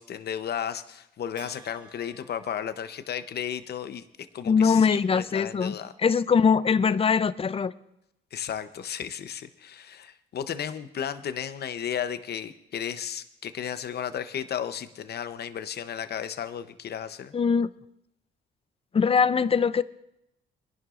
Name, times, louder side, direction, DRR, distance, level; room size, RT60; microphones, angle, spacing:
voice 1, 0.0-4.0 4.3-5.9 8.3-17.3, left 9 dB, 55° left, 0.8 m, -34 dB
Bell, 1.4-3.5, right 1 dB, 75° right, 5.0 m, -53 dB
voice 2, 4.5-7.7 17.3-17.7 18.9-19.8, left 6 dB, 30° left, 0.5 m, -22 dB
24.0 x 11.0 x 2.5 m
cardioid pair, 90°, 20 cm